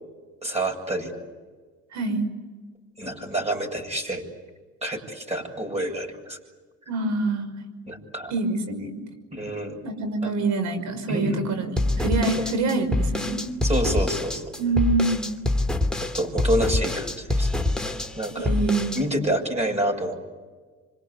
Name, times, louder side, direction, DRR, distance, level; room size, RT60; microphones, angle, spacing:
voice 1, 0.4-1.1 3.0-4.2 4.8-6.4 7.9-8.3 9.3-9.8 10.2-10.3 11.1-11.4 13.6-14.4 16.0-17.5 17.8-18.5 18.9-20.2, right 1 dB, 20° right, 2 dB, 7.7 m, -28 dB
voice 2, 1.9-2.2 6.9-7.6 8.3-8.9 9.8-13.4 14.6-15.3 18.4-18.9, right 3 dB, 65° right, 9 dB, 6.0 m, -25 dB
sound 1, 11.8-19.0, left 2 dB, ahead, 2.8 m, -25 dB
27.5 x 26.0 x 8.5 m, 1.4 s
supercardioid pair, 85°, 31 cm